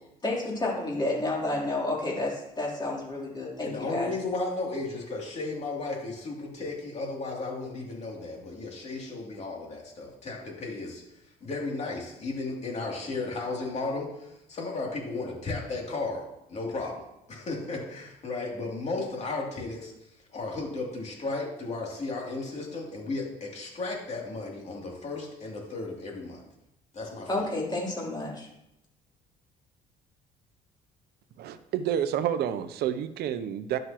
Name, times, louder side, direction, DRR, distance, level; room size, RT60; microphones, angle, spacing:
voice 1, 0.2-4.1 27.3-28.5, left 2 dB, 25° left, -4 dB, 3.4 m, -30 dB
voice 2, 3.6-11.0 11.4-16.2 16.5-19.9 20.3-26.4 26.9-27.4, left 3 dB, 40° left, -2 dB, 2.9 m, -34 dB
voice 3, 31.4-33.8, right 9 dB, 70° right, 12 dB, 0.6 m, -29 dB
11.0 x 6.4 x 3.0 m, 0.85 s
cardioid pair, 110°, 17 cm